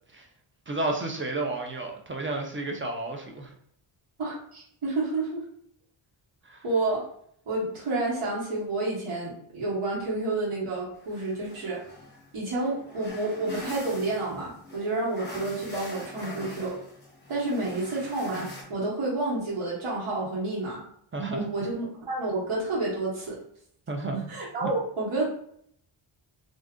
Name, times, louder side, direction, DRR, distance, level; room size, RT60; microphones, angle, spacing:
voice 1, 0.7-3.5 6.4-6.6 21.1-21.5 23.9-24.3 24.6-24.7, right 2 dB, 25° right, 2 dB, 0.4 m, -31 dB
voice 2, 4.2-5.4 6.6-7.0 7.5-11.8 12.3-16.8 17.3-20.8 21.3-23.4 24.3-25.3, right 2 dB, 80° right, -5 dB, 1.2 m, -30 dB
sound 1, 11.0-18.6, left 1 dB, 20° left, 0.9 m, -43 dB
2.5 x 2.4 x 3.5 m, 0.66 s
wide cardioid pair, 140°, 49 cm